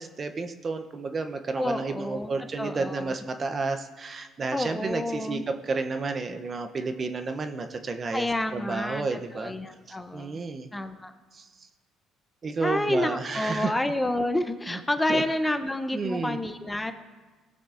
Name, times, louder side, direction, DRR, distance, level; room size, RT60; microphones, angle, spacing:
voice 1, 0.0-8.3 8.5-9.5 9.9-10.7 11.3-11.5 12.4-13.7 14.7-14.8 15.1-15.5 15.9-16.4, right 4 dB, 35° right, 7 dB, 0.6 m, -31 dB
voice 2, 1.6-2.3 2.6-3.1 4.5-5.4 8.1-10.4 10.7-11.1 12.6-16.9, left 1 dB, 10° left, 9 dB, 0.6 m, -29 dB
18.0 x 6.2 x 2.5 m, 1.4 s
cardioid pair, 100°, 0 cm